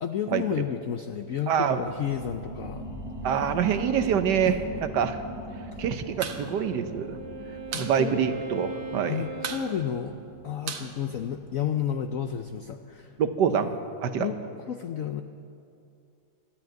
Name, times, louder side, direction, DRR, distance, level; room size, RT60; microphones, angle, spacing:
voice 1, 0.0-2.8 4.4-4.5 5.7-5.8 7.4-8.2 9.1-10.1 10.4-13.1 14.2-14.4 14.7-15.2, left 9 dB, 75° left, 7 dB, 0.7 m, -31 dB
sound 1, 1.5-12.7 13.1-13.2, equal, ahead, 2.8 m, -41 dB
voice 2, 1.5-1.8 3.2-5.2 5.8-7.2 7.8-9.2 13.2-13.7 14.0-14.3, right 8 dB, 70° right, 9 dB, 1.3 m, -25 dB
sound 2, 6.2-6.4 6.7-6.8 7.1-8.0 8.3-8.4 8.6-9.0 9.4-11.8, right 6 dB, 85° right, 1.9 m, -36 dB
Wind instrument woodwind instrument, 6.3-10.7, right 3 dB, 30° right, 0.7 m, -39 dB
13.5 x 12.0 x 9.0 m, 2.5 s
omnidirectional pair, 2.1 m